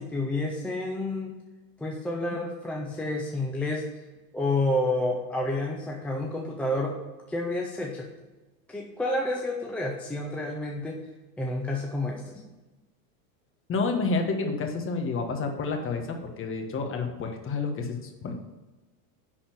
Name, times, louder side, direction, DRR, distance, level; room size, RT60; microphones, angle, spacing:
voice 1, 0.0-1.4 1.8-3.9 4.3-7.0 7.3-8.1 8.7-11.0 11.4-12.5, left 1 dB, 5° left, -1 dB, 0.3 m, -29 dB
voice 2, 13.7-18.3, left 4 dB, 25° left, 4 dB, 1.5 m, -29 dB
10.5 x 4.3 x 7.7 m, 1.1 s
supercardioid pair, 135°, 49 cm